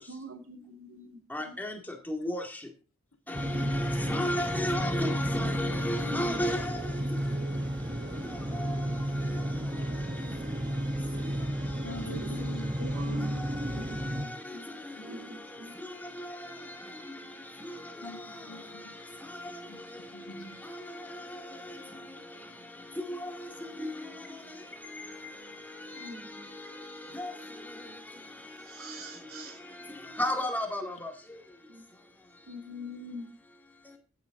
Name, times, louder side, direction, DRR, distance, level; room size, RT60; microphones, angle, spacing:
voice 1, 0.1-1.5 6.0-6.4 12.1-12.4 12.8-14.7 15.0-15.7 26.0-26.5 28.7-29.6 31.7-31.9 32.5-33.3, equal, 80° right, 3.3 m, -43 dB
voice 2, 1.3-1.8 2.1-2.4 3.4-6.7 8.6-8.7 23.1-23.2 23.8-23.9 27.1-27.3 30.2-31.1, left 1 dB, 10° left, 2.1 m, -31 dB
sound 1, 3.3-14.3, right 1 dB, 20° right, 1.1 m, -32 dB
voice 3, 11.8-14.2 14.9-15.3 18.0-19.0 19.4-20.6, equal, 85° left, 2.2 m, -45 dB
15.0 x 9.2 x 3.8 m
head